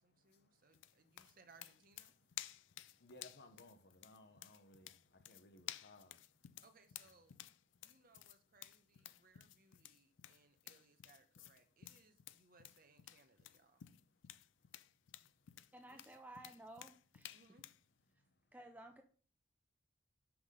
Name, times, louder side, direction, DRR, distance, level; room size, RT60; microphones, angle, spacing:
voice 1, 0.0-2.1 2.4-2.6 6.6-7.4 7.8-13.9 15.9-16.2 17.3-17.6, right 4 dB, 45° right, 1.0 m, -68 dB
sound 1, 0.7-17.8, left 13 dB, 75° left, 0.4 m, -54 dB
voice 2, 2.5-6.3 7.8-7.9, left 2 dB, 55° left, 0.9 m, -62 dB
voice 3, 15.7-17.4 18.1-18.2 18.5-19.0, right 1 dB, 10° right, 0.5 m, -55 dB
6.1 x 5.7 x 5.1 m
head